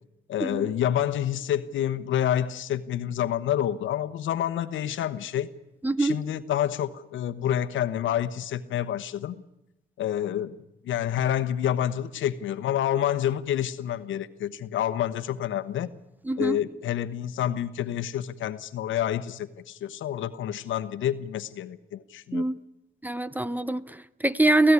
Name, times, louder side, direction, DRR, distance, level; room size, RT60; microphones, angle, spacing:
voice 1, 0.3-5.5 6.0-9.3 10.0-10.6 10.8-15.9 16.4-22.4, left 11 dB, 75° left, 1.1 m, -28 dB
voice 2, 5.8-6.2 16.2-16.6 22.3-22.6 23.0-24.7, right 2 dB, 10° right, 0.8 m, -24 dB
24.5 x 16.0 x 9.8 m
cardioid pair, 90°, 20 cm